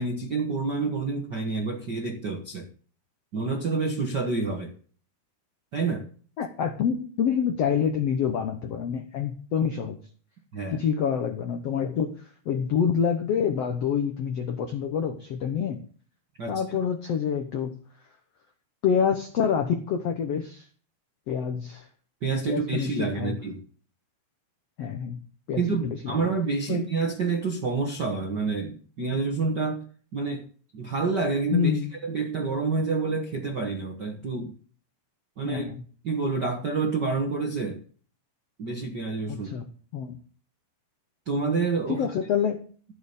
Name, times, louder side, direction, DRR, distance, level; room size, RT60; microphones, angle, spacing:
voice 1, 0.0-2.7 3.3-4.7 5.7-6.0 10.5-10.8 16.4-16.6 22.2-23.6 25.6-29.8 30.1-30.5 30.7-34.5 35.4-35.7 36.0-37.8 38.6-39.5 41.3-42.1, right 4 dB, 75° right, 3 dB, 0.9 m, -28 dB
voice 2, 6.4-10.0 10.7-15.8 16.5-17.8 18.8-20.7 21.3-21.9 22.5-23.3 24.8-25.2 25.5-26.3 26.7-26.9 31.5-31.9 35.4-35.8 39.3-40.2 41.9-42.6, left 7 dB, 85° left, 7 dB, 1.4 m, -27 dB
14.5 x 7.1 x 7.0 m, 0.42 s
omnidirectional pair, 4.6 m